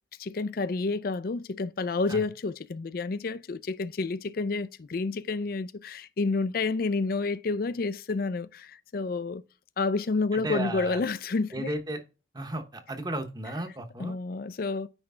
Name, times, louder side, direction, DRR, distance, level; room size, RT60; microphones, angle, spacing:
voice 1, 0.2-9.4 9.8-11.7 14.0-14.9, left 3 dB, 50° left, 0.4 m, -29 dB
voice 2, 10.3-11.0 11.5-12.0 12.3-14.2, right 1 dB, 20° right, 1.0 m, -34 dB
9.7 x 3.3 x 3.6 m
head